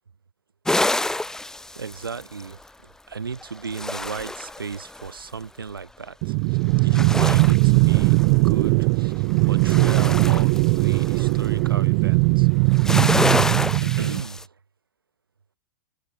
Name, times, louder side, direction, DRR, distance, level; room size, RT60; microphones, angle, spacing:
sound 1, 0.7-2.6 3.4-5.1 6.8-8.7 9.1-11.5 12.6-14.4, left 2 dB, 5° left, 1.1 m, -27 dB
voice 1, 1.8-2.6 3.1-8.2 8.4-12.5 13.3-14.5, right 5 dB, 75° right, 5.7 m, -35 dB
sound 2, 6.2-14.2, right 37 dB, 40° right, 0.7 m, -19 dB
figure-of-eight pair, 100°, 12 cm